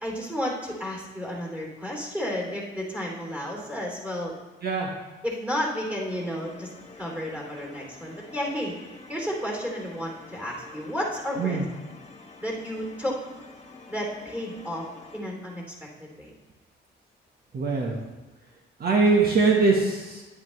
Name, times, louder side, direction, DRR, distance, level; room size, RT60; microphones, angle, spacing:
voice 1, 0.0-4.3 5.2-6.7 7.0-8.7 9.1-11.6 12.4-13.2 13.9-14.9 15.1-15.6 16.0-16.3, equal, 10° right, -1 dB, 3.0 m, -32 dB
sound 1, 6.1-15.2, left 3 dB, 30° left, 1.6 m, -48 dB
voice 2, 17.5-18.0 18.8-20.2, right 4 dB, 50° right, 0 dB, 1.3 m, -22 dB
10.5 x 9.9 x 3.2 m, 1.2 s
cardioid pair, 90°, 20 cm